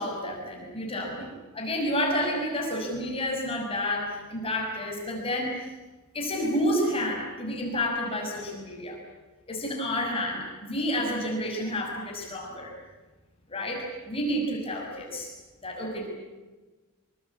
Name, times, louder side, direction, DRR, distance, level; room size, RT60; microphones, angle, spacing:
voice 1, 0.0-5.5 6.1-9.0 9.5-12.7 13.5-15.3 15.6-16.1, equal, 25° left, 0 dB, 6.0 m, -30 dB
25.5 x 24.0 x 8.4 m, 1.2 s
head